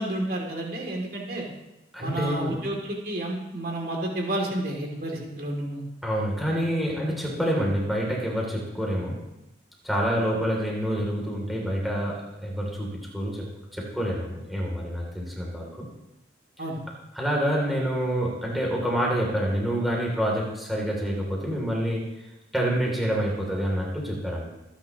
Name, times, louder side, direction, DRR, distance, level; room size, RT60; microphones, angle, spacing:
voice 1, 0.0-1.4 2.0-5.8 16.6-16.8, right 1 dB, 50° right, -1 dB, 2.6 m, -30 dB
voice 2, 1.9-2.6 6.0-9.2 9.8-15.9 17.1-22.1 22.5-24.5, equal, ahead, -3 dB, 2.8 m, -27 dB
25.5 x 10.0 x 3.0 m, 0.93 s
head